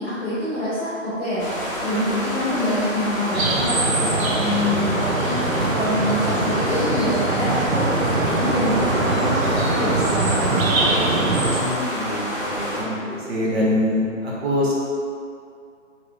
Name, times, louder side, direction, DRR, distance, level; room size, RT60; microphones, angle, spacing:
voice 1, 0.0-1.4 1.8-5.3 5.7-11.3, left 1 dB, 5° left, -21 dB, 0.6 m, -26 dB
sound 1, 1.4-12.8, equal, 40° left, 1.0 m, -28 dB
sound 2, 3.3-11.6, right 2 dB, 85° right, 0.6 m, -22 dB
voice 2, 11.5-14.7, left 1 dB, 50° right, -6 dB, 0.9 m, -24 dB
3.2 x 2.8 x 2.5 m, 2.3 s
figure-of-eight pair, 150°, 40 cm